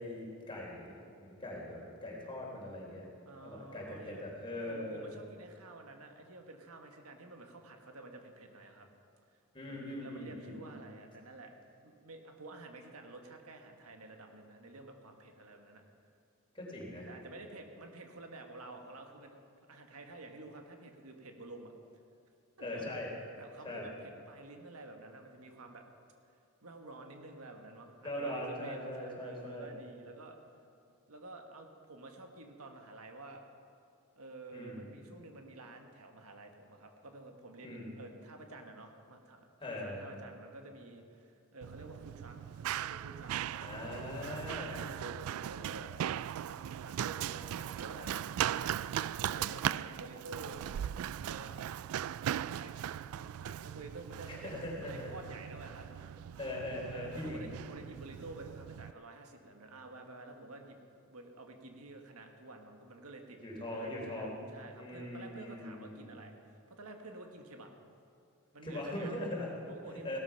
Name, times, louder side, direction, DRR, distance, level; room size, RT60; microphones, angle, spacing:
voice 1, 0.0-5.1 9.5-10.8 16.5-17.1 22.6-23.1 23.6-23.9 28.0-29.7 34.5-34.9 37.6-38.0 39.6-40.1 43.6-44.8 54.3-55.1 56.4-57.5 63.4-64.4 64.7-66.1 68.6-69.5 70.0-70.2, left 1 dB, 25° left, -2 dB, 3.6 m, -41 dB
voice 2, 3.2-4.2 4.6-8.9 9.7-11.5 11.8-15.8 17.1-19.4 19.7-21.7 22.6-22.8 23.4-25.8 26.6-30.4 31.1-33.4 34.2-44.4 44.7-48.3 48.6-48.8 49.1-50.6 51.1-51.6 52.2-54.5 54.8-55.9 56.9-60.8 61.1-67.7 68.5-69.1 69.7-70.2, right 2 dB, 90° right, 4 dB, 1.6 m, -50 dB
Run, 41.6-58.9, right 10 dB, 70° right, 0.3 m, -39 dB
17.0 x 13.0 x 5.8 m, 2.6 s
head